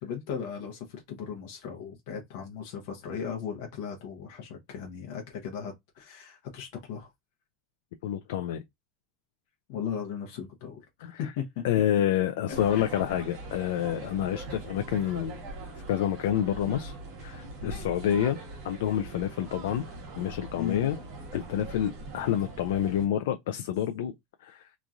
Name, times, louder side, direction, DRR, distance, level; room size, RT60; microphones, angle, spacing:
voice 1, 0.0-7.1 9.7-10.8 11.1-11.6 12.5-12.9 16.7-16.8 17.6-17.9 20.6-20.9, left 7 dB, 60° left, 0.8 m, -37 dB
voice 2, 8.0-8.6 11.0-11.2 11.6-15.4 15.9-16.9 17.2-18.4 18.6-19.8 20.2-21.0 21.3-24.1 24.4-24.6, left 10 dB, 85° left, 0.3 m, -28 dB
sound 1, 12.5-23.1, right 2 dB, 50° right, 1.2 m, -42 dB
3.0 x 2.6 x 2.3 m
supercardioid pair, 175°, 0 cm